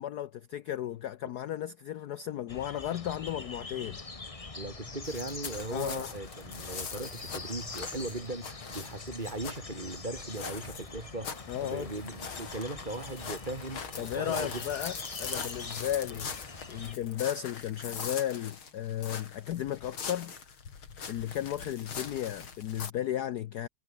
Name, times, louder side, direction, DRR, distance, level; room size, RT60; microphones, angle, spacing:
voice 1, 0.0-4.0 5.7-6.1 11.5-11.9 14.0-16.3 16.7-20.3 21.1-23.7, left 11 dB, 65° left, 1.1 m, -34 dB
sound 1, 2.5-16.9, left 3 dB, 20° left, 1.2 m, -44 dB
voice 2, 4.6-14.6, right 2 dB, 20° right, 2.5 m, -38 dB
sound 2, 5.0-22.9, left 6 dB, 80° left, 3.5 m, -42 dB
omnidirectional pair, 2.2 m